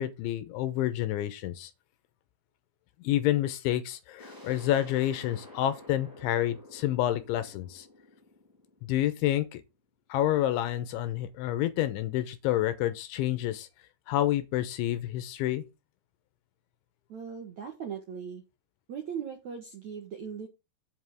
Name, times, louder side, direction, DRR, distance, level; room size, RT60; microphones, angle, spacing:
voice 1, 0.0-1.7 3.0-7.9 8.8-9.6 10.1-13.7 14.1-15.6, left 13 dB, 80° left, 3.1 m, -29 dB
sound 1, 4.2-9.7, left 1 dB, 10° right, 1.0 m, -50 dB
voice 2, 17.1-18.4 18.9-20.5, right 7 dB, 65° right, 1.8 m, -39 dB
8.3 x 5.3 x 6.0 m
omnidirectional pair, 5.7 m